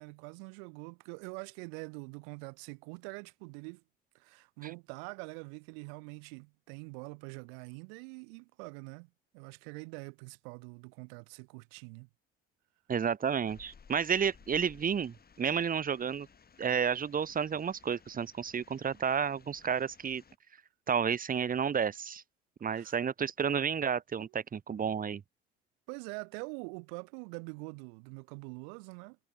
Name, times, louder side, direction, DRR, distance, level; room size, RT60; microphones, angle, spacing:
voice 1, 0.0-3.8 4.1-12.1 22.7-23.0 24.2-24.3 25.9-29.2, right 38 dB, 60° right, 1.9 m, -45 dB
voice 2, 12.9-16.3 16.6-20.2 20.9-22.2 22.6-25.2, right 7 dB, 25° right, 1.2 m, -31 dB
sound 1, 13.5-20.4, left 6 dB, 30° left, 6.1 m, -59 dB
figure-of-eight pair, 60°, 33 cm